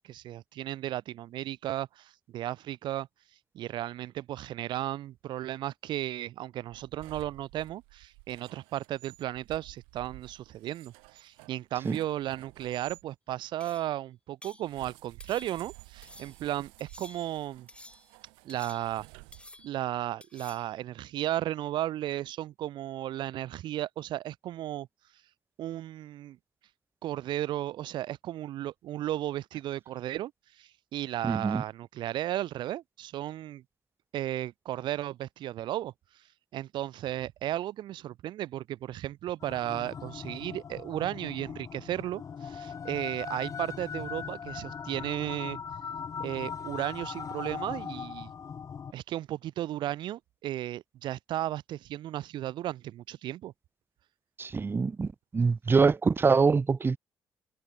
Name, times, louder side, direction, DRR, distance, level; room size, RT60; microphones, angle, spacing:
voice 1, 0.0-3.1 3.5-17.7 18.4-19.1 19.6-24.9 25.6-26.4 27.0-30.3 30.6-33.6 34.1-35.9 36.5-45.6 46.2-48.3 48.9-53.5, right 13 dB, 75° right, 1.2 m, -35 dB
sound 1, 6.7-13.0 14.6-19.9, right 31 dB, 90° right, 4.3 m, -53 dB
sound 2, 13.6-14.0 14.4-14.7 15.2-15.7 16.0-16.4 16.8-17.4 17.7-18.1 18.5-19.1 19.3-19.9 20.2-20.7, left 1 dB, 15° left, 7.3 m, -51 dB
voice 2, 31.2-31.6 54.4-57.0, right 4 dB, 30° right, 0.5 m, -25 dB
sound 3, 39.4-48.9, left 6 dB, 45° left, 0.6 m, -40 dB
supercardioid pair, 55°, 8 cm